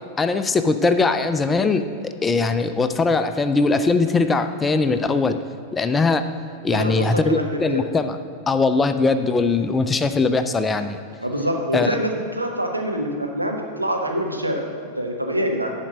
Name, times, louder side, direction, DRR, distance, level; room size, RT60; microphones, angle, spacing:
voice 1, 0.2-1.8 2.2-5.4 5.7-6.3 6.6-8.2 8.5-11.0 11.7-11.9, left 3 dB, 15° left, 9 dB, 0.4 m, -20 dB
voice 2, 6.7-7.9 11.2-15.7, equal, 85° right, 2 dB, 1.0 m, -25 dB
11.0 x 4.5 x 6.3 m, 2.4 s
figure-of-eight pair, 90°, 0 cm